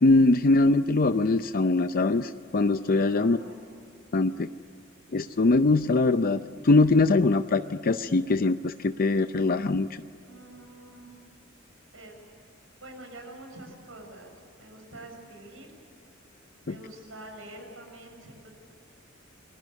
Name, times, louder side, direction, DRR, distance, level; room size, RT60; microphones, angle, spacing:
voice 1, 0.0-3.4 4.1-4.5 5.1-9.9 16.7-16.8, left 3 dB, 45° left, 10 dB, 0.6 m, -22 dB
voice 2, 3.0-3.8 10.2-11.2 11.9-12.2 12.8-15.7 16.7-18.5, right 1 dB, 75° right, 3 dB, 7.2 m, -46 dB
29.0 x 21.5 x 8.2 m, 2.6 s
head